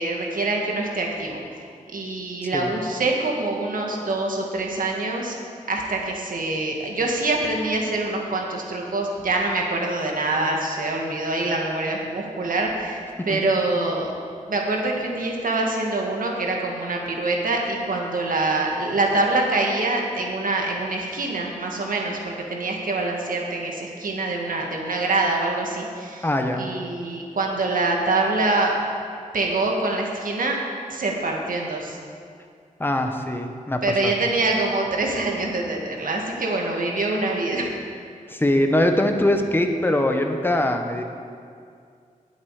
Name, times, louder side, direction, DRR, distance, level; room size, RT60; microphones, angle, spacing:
voice 1, 0.0-1.4 1.9-5.4 5.7-14.1 14.5-26.3 26.6-28.8 29.3-30.6 30.9-32.0 33.8-37.7, right 2 dB, 80° right, 0 dB, 1.9 m, -25 dB
voice 2, 26.2-26.6 32.8-34.1 38.3-41.0, left 1 dB, 15° left, 4 dB, 1.0 m, -22 dB
19.5 x 7.8 x 4.9 m, 2.3 s
wide cardioid pair, 120°, 14 cm